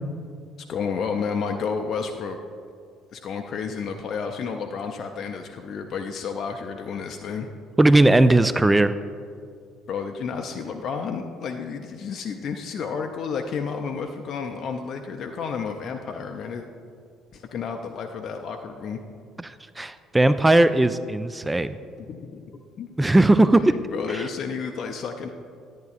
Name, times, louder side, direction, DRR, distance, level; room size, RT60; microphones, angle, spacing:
voice 1, 0.7-2.4 3.1-7.5 9.9-16.7 17.3-19.0 22.1-22.5 22.8-22.9 23.9-25.3, left 5 dB, 50° left, 4 dB, 0.4 m, -31 dB
voice 2, 7.8-8.9 19.4-21.8 23.0-23.8 24.1-24.2, right 2 dB, 15° right, 13 dB, 0.3 m, -18 dB
10.5 x 9.2 x 2.4 m, 2.2 s
figure-of-eight pair, 50°, 0 cm